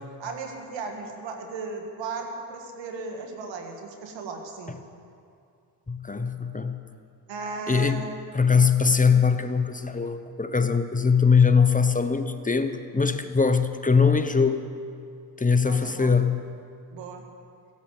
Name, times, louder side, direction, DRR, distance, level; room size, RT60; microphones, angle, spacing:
voice 1, 0.2-4.7 7.3-8.1 15.6-16.2 16.9-17.2, right 4 dB, 85° right, 3 dB, 1.8 m, -36 dB
voice 2, 5.9-6.8 7.7-8.0 8.3-14.7 15.4-16.4, left 5 dB, 20° left, 9 dB, 0.9 m, -21 dB
16.0 x 8.3 x 7.9 m, 2.5 s
supercardioid pair, 60°, 43 cm